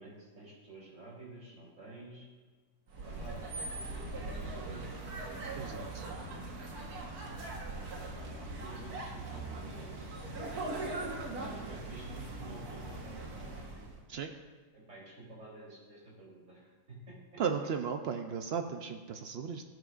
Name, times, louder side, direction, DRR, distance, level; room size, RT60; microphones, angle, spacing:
voice 1, 0.0-2.2 3.0-4.9 8.2-13.8 14.7-17.4, right 2 dB, 45° right, -5 dB, 3.8 m, -51 dB
sound 1, 2.9-14.0, right 2 dB, 65° right, 1.8 m, -41 dB
voice 2, 5.6-6.1 14.1-14.3 17.4-19.6, right 6 dB, 85° right, 6 dB, 0.5 m, -35 dB
18.5 x 7.7 x 2.5 m, 1.5 s
omnidirectional pair, 1.8 m